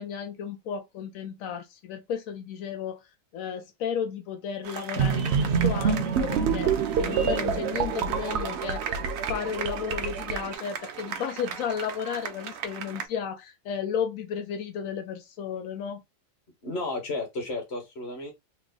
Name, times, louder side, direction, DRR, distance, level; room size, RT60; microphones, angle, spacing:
voice 1, 0.0-3.0 3.3-6.7 7.0-9.0 9.3-16.0, left 7 dB, 90° left, 1.0 m, -33 dB
sound 1, 4.6-13.1, right 7 dB, 85° right, 1.1 m, -38 dB
sound 2, 5.0-10.5, right 6 dB, 65° right, 0.8 m, -27 dB
voice 2, 16.6-18.3, left 2 dB, 55° left, 1.5 m, -33 dB
3.3 x 2.0 x 3.6 m
omnidirectional pair, 1.4 m